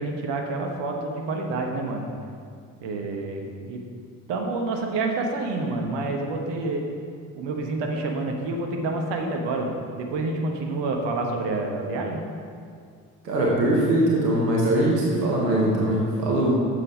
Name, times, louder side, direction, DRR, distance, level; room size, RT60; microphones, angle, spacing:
voice 1, 0.0-2.1 2.8-3.8 4.3-6.8 7.3-12.2, right 2 dB, 60° right, 2 dB, 1.2 m, -28 dB
voice 2, 13.2-16.5, right 1 dB, 85° right, -3 dB, 1.1 m, -21 dB
8.7 x 6.9 x 4.9 m, 2.2 s
figure-of-eight pair, 40°, 48 cm